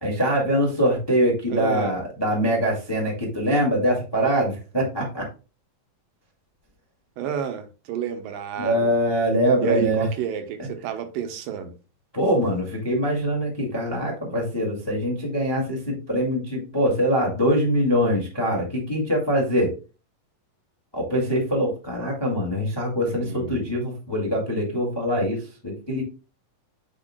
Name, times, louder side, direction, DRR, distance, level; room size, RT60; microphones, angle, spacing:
voice 1, 0.0-5.3 8.6-10.1 12.1-19.7 20.9-26.0, equal, 15° left, 0.9 m, -23 dB
voice 2, 1.5-1.9 7.2-8.9 9.6-11.7 23.0-23.7, right 8 dB, 80° right, 2.5 m, -30 dB
8.8 x 5.4 x 2.2 m
omnidirectional pair, 4.0 m